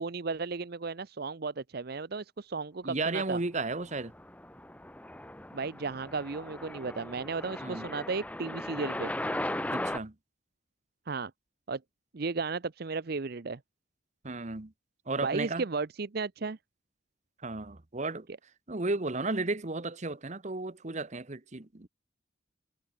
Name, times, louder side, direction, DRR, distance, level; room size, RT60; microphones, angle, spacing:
voice 1, 0.0-3.4 5.5-9.1 11.1-11.3 11.7-11.8 12.1-13.6 15.2-16.6, right 4 dB, 55° right, 0.7 m, -34 dB
voice 2, 2.8-4.1 7.6-7.9 9.7-10.1 14.2-14.7 15.1-15.6 17.4-18.3 18.7-21.9, right 3 dB, 35° right, 1.1 m, -34 dB
sound 1, 3.9-10.0, left 1 dB, 5° left, 1.2 m, -37 dB
head